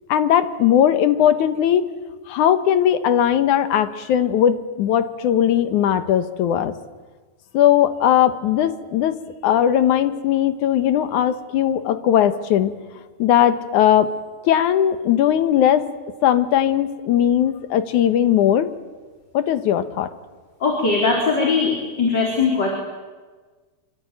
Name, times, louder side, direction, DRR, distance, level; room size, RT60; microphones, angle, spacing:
voice 1, 0.1-1.8 2.3-6.7 7.5-9.2 9.4-12.7 13.2-14.1 14.4-15.9 16.2-18.7 19.3-20.1, left 10 dB, 85° left, 11 dB, 2.7 m, -18 dB
voice 2, 20.6-22.7, left 4 dB, 35° left, 0 dB, 4.7 m, -20 dB
26.5 x 24.0 x 9.3 m, 1.4 s
omnidirectional pair, 3.4 m